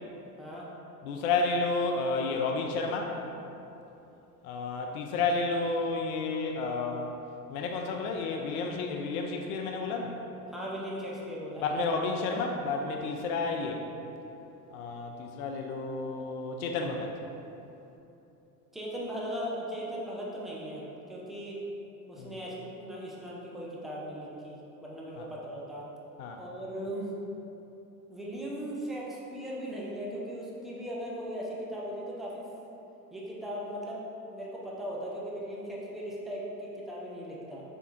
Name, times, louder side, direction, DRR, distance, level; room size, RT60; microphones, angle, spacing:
voice 1, 1.0-3.2 4.4-7.2 7.5-10.2 11.6-13.8 14.7-17.1 22.2-22.3 25.2-25.3 26.2-26.4, left 3 dB, 60° left, 2 dB, 0.5 m, -31 dB
voice 2, 10.5-11.6 18.7-21.6 22.1-25.9 26.4-27.1 28.1-32.5 33.1-34.0 34.3-37.6, equal, ahead, -5 dB, 0.4 m, -38 dB
4.6 x 3.4 x 2.5 m, 2.9 s
hypercardioid pair, 80°, 49 cm